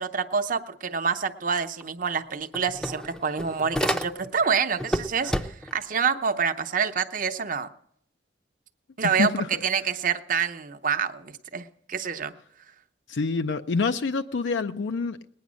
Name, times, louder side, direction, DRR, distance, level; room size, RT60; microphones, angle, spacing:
voice 1, 0.0-7.7 9.0-12.3, right 6 dB, 50° right, 9 dB, 0.7 m, -27 dB
sound 1, 1.8-1.9 2.2-4.4 4.8-5.8, equal, 5° left, 0.5 m, -30 dB
voice 2, 9.0-9.5 13.1-15.2, left 4 dB, 90° left, 9 dB, 0.5 m, -27 dB
19.5 x 9.6 x 6.2 m, 0.71 s
head